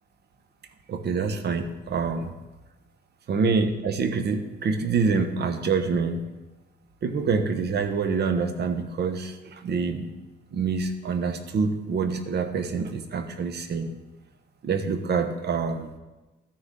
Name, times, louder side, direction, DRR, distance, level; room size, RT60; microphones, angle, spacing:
voice 1, 0.9-2.3 3.3-6.2 7.0-10.1 10.5-13.9 14.6-15.9, right 5 dB, 55° right, 8 dB, 1.0 m, -26 dB
13.0 x 6.4 x 3.8 m, 1.1 s
cardioid pair, 90°, 20 cm